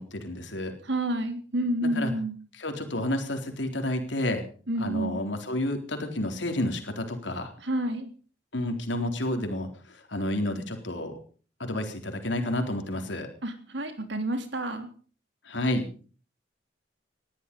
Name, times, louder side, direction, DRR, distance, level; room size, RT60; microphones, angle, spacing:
voice 1, 0.0-0.7 1.8-2.1 2.6-4.4 4.8-7.5 8.5-9.7 10.1-11.1 11.6-13.3 15.5-15.8, left 1 dB, 70° left, 5 dB, 3.9 m, -30 dB
voice 2, 0.8-2.4 4.7-5.2 7.6-8.1 13.4-14.9, right 1 dB, 70° right, 7 dB, 3.5 m, -29 dB
20.0 x 13.5 x 5.4 m, 0.41 s
head